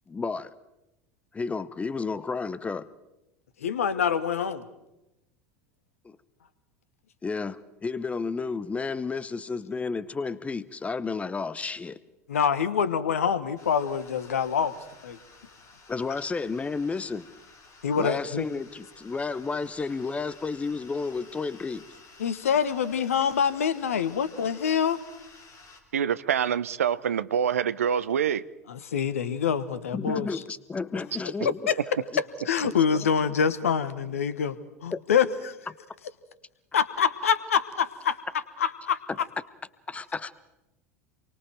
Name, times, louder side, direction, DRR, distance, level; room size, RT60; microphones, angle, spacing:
voice 1, 0.1-0.5 1.3-2.9 6.0-6.2 7.2-12.0 15.9-17.3 17.9-21.8 29.9-31.7 32.1-32.2 34.9-35.0 39.9-40.3, left 4 dB, 15° left, 0.8 m, -32 dB
voice 2, 3.6-4.6 12.3-14.7 15.0-15.2 17.8-18.4 22.2-25.0 28.7-30.4 31.7-31.8 32.4-34.6 34.8-35.6 36.7-38.2 38.6-39.0, left 7 dB, 70° left, 1.3 m, -25 dB
sound 1, 13.6-25.8, left 3 dB, 40° left, 4.0 m, -53 dB
voice 3, 25.9-28.4, right 8 dB, 70° right, 0.7 m, -25 dB
28.5 x 24.0 x 4.6 m
figure-of-eight pair, 75°, 8 cm